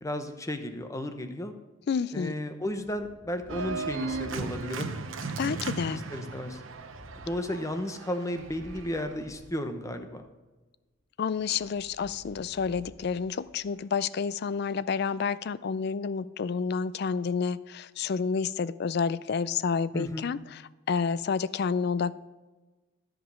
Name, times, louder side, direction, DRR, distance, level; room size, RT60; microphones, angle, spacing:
voice 1, 0.0-1.5 2.1-4.9 5.4-5.6 5.9-6.6 7.2-10.3 19.9-20.3, left 1 dB, 15° left, 7 dB, 0.8 m, -34 dB
voice 2, 1.9-2.4 5.4-6.0 11.2-20.6 20.9-22.1, left 5 dB, 55° left, 17 dB, 0.4 m, -29 dB
Thunder, 2.6-5.1 5.4-10.2 11.3-13.9, equal, 85° left, 2.0 m, -52 dB
Organ, 3.5-9.1, right 4 dB, 80° right, 0.8 m, -36 dB
13.5 x 5.2 x 6.2 m, 1.2 s
head